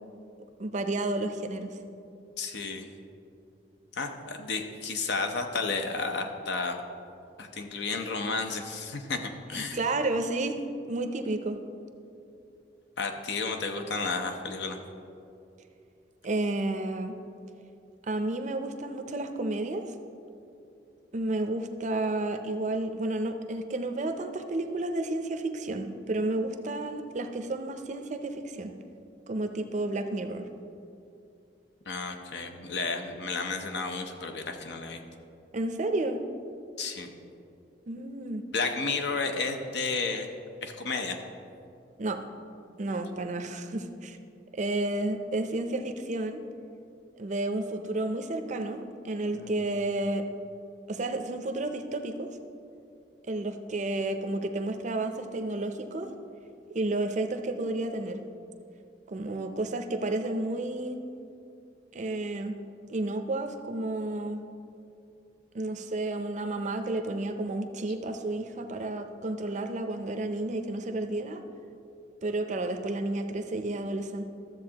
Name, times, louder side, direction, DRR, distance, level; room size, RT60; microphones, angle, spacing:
voice 1, 0.6-1.8 9.5-11.6 16.2-17.1 18.1-19.9 21.1-28.7 29.3-30.5 35.5-36.2 37.9-38.4 42.0-42.2 42.8-44.2 44.5-46.4 47.2-50.2 50.9-52.3 53.3-56.1 56.7-58.2 59.1-61.0 61.9-62.6 62.9-64.4 65.5-71.4 72.2-74.3, right 2 dB, 45° right, 7 dB, 0.5 m, -31 dB
voice 2, 2.4-2.9 4.0-6.8 7.4-9.8 13.0-14.8 31.9-35.0 36.8-37.1 38.5-40.3 40.6-41.2 49.3-49.5, left 4 dB, 70° left, 5 dB, 0.7 m, -32 dB
13.0 x 7.4 x 2.9 m, 2.6 s
head